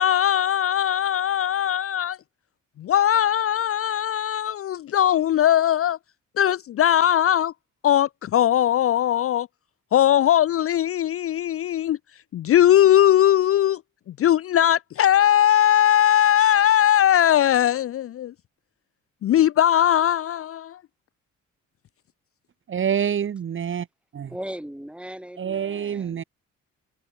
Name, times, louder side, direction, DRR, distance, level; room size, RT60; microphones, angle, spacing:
voice 1, 0.0-2.2 2.8-6.0 6.4-7.5 7.8-9.5 9.9-12.0 12.3-13.8 14.2-18.3 19.2-20.8, left 11 dB, 50° left, 0.5 m, -19 dB
voice 2, 22.7-23.9 24.1-24.3 25.4-26.2, right 8 dB, 40° right, 1.0 m, -26 dB
voice 3, 24.3-26.3, equal, 5° right, 5.2 m, -38 dB
cardioid pair, 90°, 30 cm